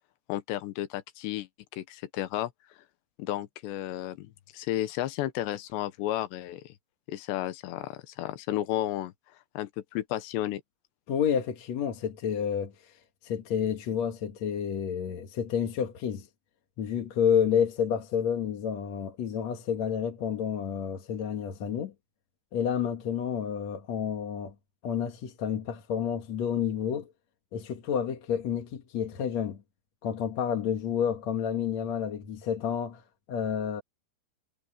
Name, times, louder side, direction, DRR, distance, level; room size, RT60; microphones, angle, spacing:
voice 1, 0.3-1.5 1.7-2.5 3.2-6.8 7.1-9.1 9.5-10.6, left 14 dB, 90° left, 3.3 m, -33 dB
voice 2, 11.1-16.3 16.8-21.9 22.5-24.5 24.8-27.1 27.5-29.6 30.0-33.8, left 8 dB, 55° left, 2.2 m, -30 dB
omnidirectional pair, 4.9 m